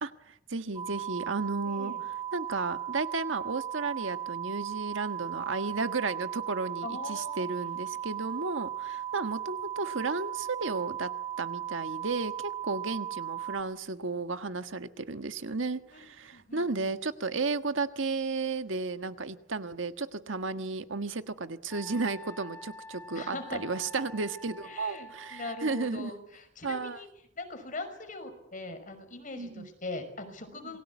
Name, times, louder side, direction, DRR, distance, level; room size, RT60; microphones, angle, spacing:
voice 1, 0.0-11.1 11.4-26.2 26.6-27.0 29.4-29.7 30.6-30.7, right 3 dB, 90° right, 9 dB, 1.5 m, -33 dB
sound 1, 0.8-13.6, right 11 dB, 20° right, 1.7 m, -37 dB
voice 2, 6.8-7.4 15.9-16.0 16.3-16.9 20.6-20.7 23.1-23.6 24.6-27.1 27.4-30.8, left 2 dB, 45° left, 7 dB, 5.6 m, -41 dB
Wind instrument woodwind instrument, 21.7-25.9, left 1 dB, 10° left, 3.1 m, -47 dB
28.0 x 21.5 x 8.4 m, 0.77 s
head